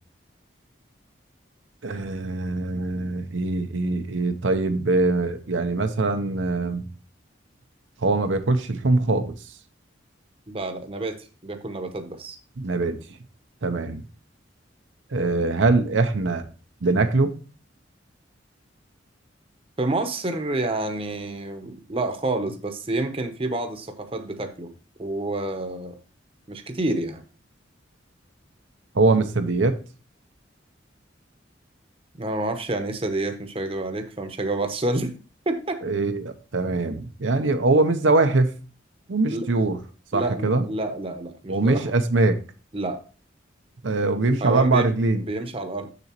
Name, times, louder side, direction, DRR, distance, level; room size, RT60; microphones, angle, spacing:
voice 1, 1.8-6.9 8.0-9.3 12.6-13.0 13.6-14.0 15.1-16.4 16.8-17.3 28.9-29.7 35.8-38.5 39.1-39.8 40.1-40.6 41.5-42.4 43.8-45.2, right 3 dB, 85° right, 7 dB, 0.8 m, -22 dB
voice 2, 10.5-12.4 19.8-24.7 25.0-26.0 26.5-27.2 32.2-35.1 35.5-35.8 39.3-39.5 40.1-41.9 42.7-43.0 44.4-44.9 45.2-45.9, right 2 dB, 30° right, 7 dB, 0.8 m, -28 dB
6.9 x 6.8 x 2.9 m, 0.36 s
head